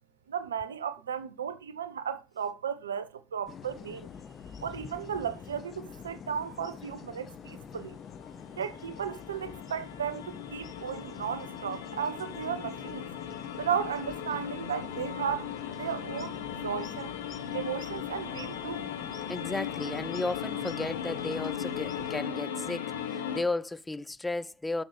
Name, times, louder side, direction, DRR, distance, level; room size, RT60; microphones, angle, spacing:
voice 1, 0.3-4.1 4.6-8.0 8.6-13.1 13.6-15.5 15.8-16.3 16.6-17.2 17.5-18.9, right 8 dB, 80° right, 0.7 m, -35 dB
sound 1, 3.5-22.1, left 7 dB, 40° left, 1.2 m, -46 dB
sound 2, 8.1-23.4, left 8 dB, 80° left, 1.0 m, -38 dB
voice 2, 19.3-24.8, left 2 dB, 10° left, 0.7 m, -34 dB
11.5 x 6.4 x 3.3 m
figure-of-eight pair, 60°, 0 cm